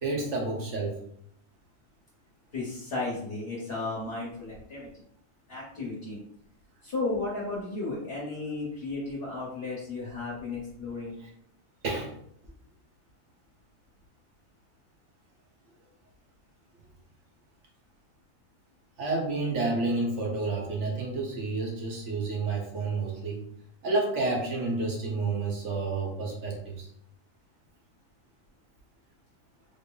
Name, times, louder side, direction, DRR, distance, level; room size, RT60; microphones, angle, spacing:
voice 1, 0.0-1.0 11.2-11.3 11.8-12.1 19.0-23.4 23.8-26.9, right 3 dB, 55° right, -1 dB, 1.2 m, -30 dB
voice 2, 2.5-4.9 5.5-6.2 6.8-11.2, left 3 dB, 45° left, -6 dB, 1.0 m, -34 dB
3.8 x 2.0 x 3.8 m, 0.71 s
omnidirectional pair, 1.6 m